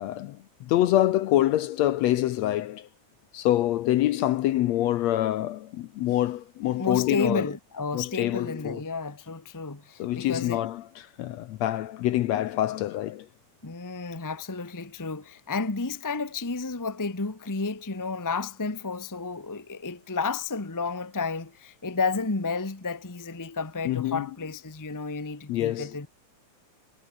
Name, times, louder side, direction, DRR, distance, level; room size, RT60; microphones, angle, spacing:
voice 1, 0.0-2.9 3.3-7.5 7.9-8.8 10.0-13.3 23.9-24.3 25.5-26.0, left 14 dB, 75° left, 1.8 m, -26 dB
voice 2, 6.8-10.6 13.6-26.1, left 4 dB, 15° left, 0.7 m, -31 dB
omnidirectional pair, 3.6 m